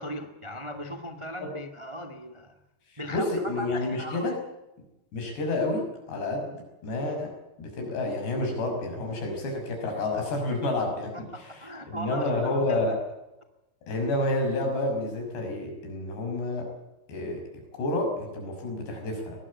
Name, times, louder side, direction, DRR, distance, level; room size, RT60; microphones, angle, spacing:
voice 1, 0.0-2.6 3.0-4.4 11.1-12.8, left 1 dB, 55° right, 8 dB, 0.3 m, -38 dB
voice 2, 2.9-4.4 5.1-6.6 6.8-7.3 7.6-11.3 11.9-13.0 13.8-16.7 17.1-17.4 17.7-19.4, left 2 dB, 80° left, 3 dB, 8.2 m, -29 dB
22.5 x 19.0 x 8.6 m, 0.96 s
omnidirectional pair, 4.7 m